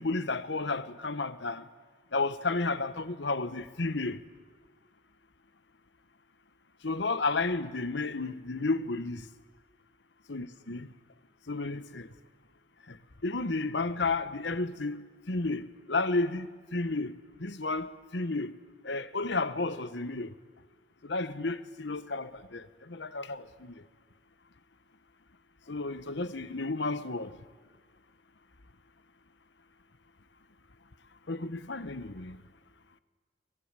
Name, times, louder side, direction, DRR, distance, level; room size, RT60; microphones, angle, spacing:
voice 1, 0.0-1.6 2.1-4.2 6.8-9.2 10.3-10.9 11.5-12.1 12.9-13.0 13.2-15.0 15.3-17.1 17.4-18.5 18.8-20.3 21.0-23.8 25.7-27.4 31.3-32.4, left 3 dB, 65° left, 1.1 m, -32 dB
22.5 x 21.0 x 8.9 m
head